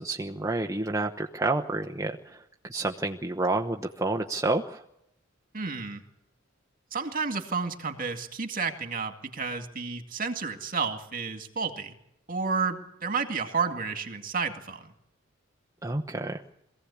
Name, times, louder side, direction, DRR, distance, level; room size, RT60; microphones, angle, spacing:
voice 1, 0.0-4.8 15.8-16.4, right 2 dB, 15° right, 2 dB, 0.9 m, -29 dB
voice 2, 5.5-6.0 6.9-12.0 12.3-14.9, right 5 dB, 40° right, 6 dB, 2.2 m, -31 dB
23.0 x 16.0 x 8.5 m, 0.82 s
head